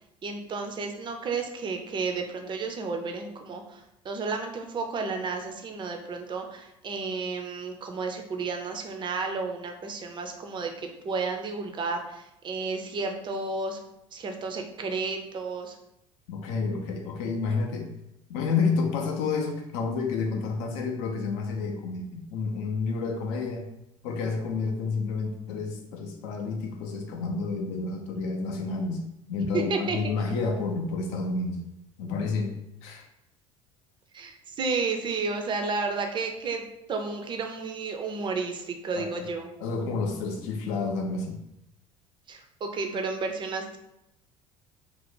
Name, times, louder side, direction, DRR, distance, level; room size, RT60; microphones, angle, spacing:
voice 1, 0.2-13.8 14.1-15.8 29.7-30.0 34.1-39.5 42.3-43.8, right 4 dB, 25° right, 4 dB, 0.5 m, -32 dB
voice 2, 16.3-17.9 18.3-23.7 24.0-29.0 29.3-31.6 32.0-33.0 38.9-39.3 39.6-41.4, left 4 dB, 55° left, 3 dB, 0.4 m, -30 dB
2.5 x 2.1 x 3.7 m, 0.83 s
figure-of-eight pair, 60°, 17 cm